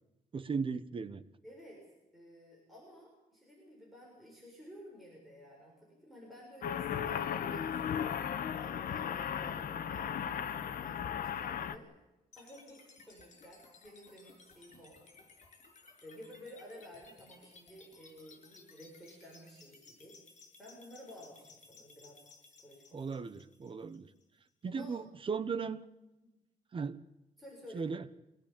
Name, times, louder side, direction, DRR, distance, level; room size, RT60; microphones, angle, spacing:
voice 1, 0.3-1.2 22.9-24.1 24.6-25.8 26.7-27.0 27.7-28.0, right 5 dB, 35° right, 13 dB, 1.0 m, -37 dB
voice 2, 1.4-1.9 2.1-8.2 8.5-11.9 12.4-15.0 16.0-20.2 20.6-23.1 24.6-25.0 26.2-26.3 27.4-27.9, equal, ahead, -4 dB, 7.1 m, -53 dB
sound 1, 6.6-11.8, left 8 dB, 70° left, 1.3 m, -36 dB
sound 2, 12.3-24.3, left 4 dB, 50° left, 7.4 m, -59 dB
24.0 x 18.5 x 8.8 m, 0.96 s
wide cardioid pair, 170°, 16 cm